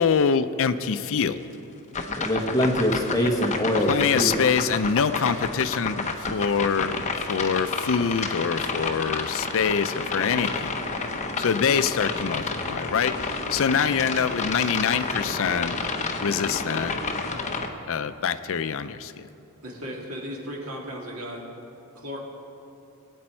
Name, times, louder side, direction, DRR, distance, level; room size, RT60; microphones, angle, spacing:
voice 1, 0.0-1.4 3.9-10.7 11.4-15.8 16.2-17.0 17.9-19.1, left 6 dB, 65° left, 12 dB, 0.5 m, -25 dB
sound 1, 1.9-17.7, left 4 dB, 30° left, 0.9 m, -30 dB
voice 2, 2.1-4.5, equal, 15° left, 1 dB, 1.3 m, -24 dB
voice 3, 19.6-21.4 21.9-22.2, equal, 70° right, -1 dB, 2.3 m, -35 dB
22.0 x 8.5 x 4.5 m, 2.8 s
head